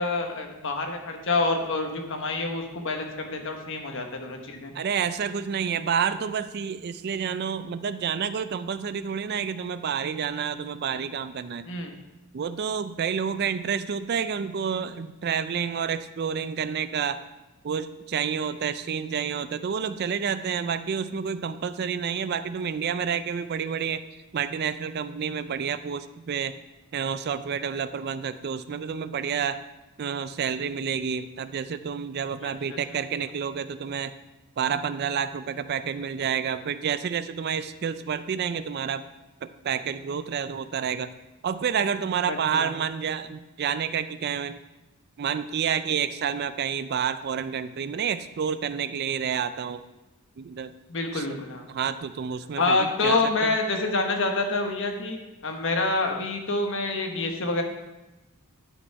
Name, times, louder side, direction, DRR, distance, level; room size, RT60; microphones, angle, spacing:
voice 1, 0.0-4.7 11.6-11.9 32.7-32.8 42.3-42.7 50.9-51.6 52.6-55.2 55.4-57.6, left 3 dB, 60° left, 4 dB, 1.2 m, -27 dB
voice 2, 4.7-11.6 12.3-17.2 17.6-24.0 24.3-26.6 26.9-29.6 30.0-34.1 34.6-39.0 39.4-41.1 41.4-44.6 45.2-49.8 50.4-50.7 51.1-51.4 51.7-53.6, right 7 dB, 45° right, 12 dB, 0.3 m, -29 dB
11.5 x 5.0 x 4.7 m, 1.0 s
head